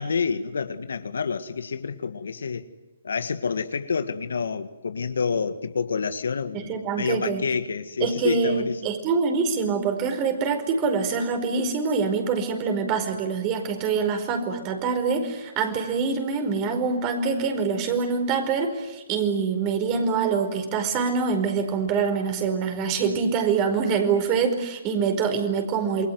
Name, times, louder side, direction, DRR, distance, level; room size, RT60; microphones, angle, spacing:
voice 1, 0.0-2.7 3.0-8.8, left 5 dB, 70° left, 1.8 m, -28 dB
voice 2, 6.5-7.4 8.0-26.1, right 5 dB, 30° right, 4.8 m, -25 dB
28.0 x 22.5 x 9.5 m
hypercardioid pair, 135°, 0 cm